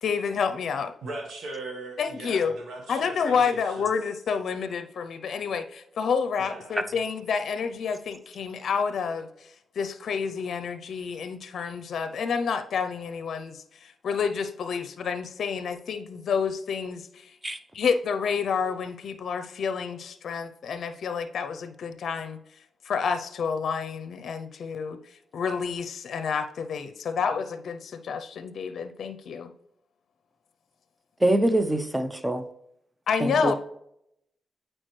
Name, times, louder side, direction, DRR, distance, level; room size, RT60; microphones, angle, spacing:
voice 1, 0.0-0.9 2.0-2.5 2.9-17.3 17.7-22.4 22.8-25.0 25.3-29.5 33.1-33.5, left 6 dB, 70° left, 0.5 m, -29 dB
voice 2, 1.0-3.9 6.4-6.9, right 2 dB, 80° right, 1.3 m, -39 dB
voice 3, 31.2-32.5 33.2-33.5, right 1 dB, 10° right, 0.6 m, -24 dB
8.8 x 4.4 x 3.2 m
cardioid pair, 85°, 0 cm